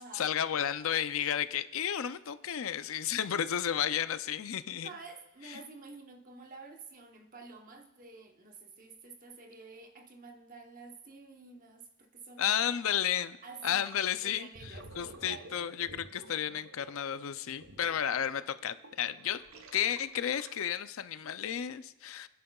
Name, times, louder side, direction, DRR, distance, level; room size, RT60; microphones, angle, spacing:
voice 1, 0.1-4.9 12.4-13.4 13.6-14.5 15.0-19.4 19.7-22.3, left 9 dB, 65° left, 12 dB, 0.4 m, -32 dB
voice 2, 4.8-12.6 13.4-13.8 14.2-15.5 17.9-18.0, right 3 dB, 35° right, 4 dB, 1.0 m, -50 dB
Gurgling, 13.8-14.0 14.4-20.9, right 1 dB, 60° right, 1.0 m, -51 dB
29.0 x 10.5 x 2.3 m, 0.94 s
head